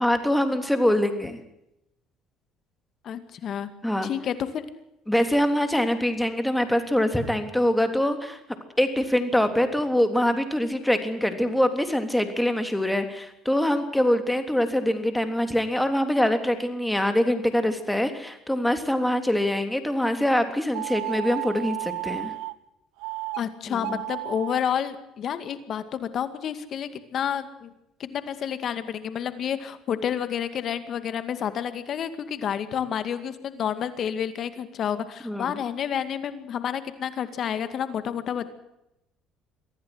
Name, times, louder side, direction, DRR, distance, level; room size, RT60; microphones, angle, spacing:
voice 1, 0.0-1.4 3.8-4.1 5.1-8.4 8.8-22.3 23.7-24.0 35.2-35.6, left 1 dB, 5° left, 8 dB, 3.3 m, -24 dB
voice 2, 3.0-3.7 4.0-4.7 23.4-27.7 28.0-38.5, left 8 dB, 50° left, 11 dB, 2.2 m, -30 dB
sound 1, 20.7-22.5 23.0-23.4 23.7-24.6, right 21 dB, 85° right, 0.9 m, -33 dB
24.0 x 15.5 x 8.0 m, 0.84 s
cardioid pair, 110°, 0 cm